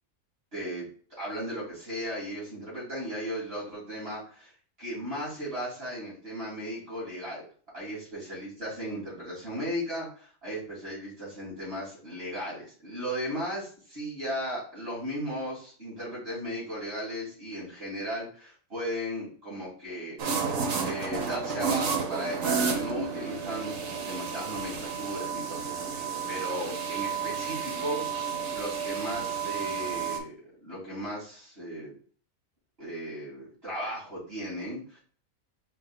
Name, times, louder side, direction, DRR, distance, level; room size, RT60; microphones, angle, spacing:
voice 1, 0.5-0.9 1.2-4.5 4.8-7.4 7.7-20.2 20.8-28.3 28.5-31.9 32.8-35.0, equal, 40° right, -6 dB, 2.9 m, -36 dB
sound 1, 20.2-30.2, right 5 dB, 65° right, 1.2 m, -31 dB
5.0 x 4.5 x 2.3 m, 0.44 s
omnidirectional pair, 1.6 m